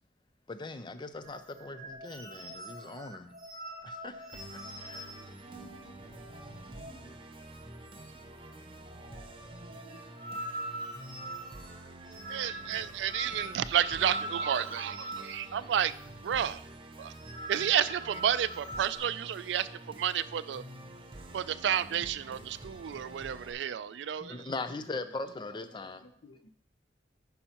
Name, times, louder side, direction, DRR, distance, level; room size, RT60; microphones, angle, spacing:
voice 1, 0.5-3.3 3.8-4.3 4.5-5.1 24.2-26.0, left 3 dB, 25° left, 10 dB, 0.4 m, -40 dB
sound 1, 1.2-7.2 7.4-7.6 7.9-8.4 8.7-16.0 16.3-16.5 17.0-19.0, right 1 dB, 50° right, 2.8 m, -43 dB
Musical instrument, 4.3-23.5, right 1 dB, 30° right, 0.6 m, -48 dB
voice 2, 12.3-15.9 16.2-16.6 17.0-17.1 17.5-20.6 21.3-24.5, right 9 dB, 70° right, 15 dB, 0.3 m, -31 dB
voice 3, 24.7-26.5, left 2 dB, 65° left, 5 dB, 0.7 m, -55 dB
9.9 x 5.5 x 2.9 m, 0.65 s
head